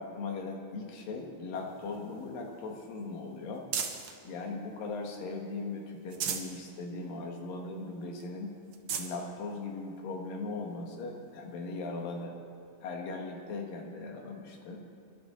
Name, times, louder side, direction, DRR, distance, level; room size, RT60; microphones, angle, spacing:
voice 1, 0.0-3.6 4.2-8.5 9.0-12.4 12.8-14.8, left 3 dB, 80° left, 1 dB, 3.3 m, -39 dB
sound 1, 1.5-4.2 4.7-5.5 5.9-6.6 7.0-7.1 7.5-7.6 8.2-8.3 8.7-9.1 10.0-10.1 11.8-11.9, right 7 dB, 85° right, 1.2 m, -38 dB
25.5 x 11.5 x 3.9 m, 2.4 s
omnidirectional pair, 3.9 m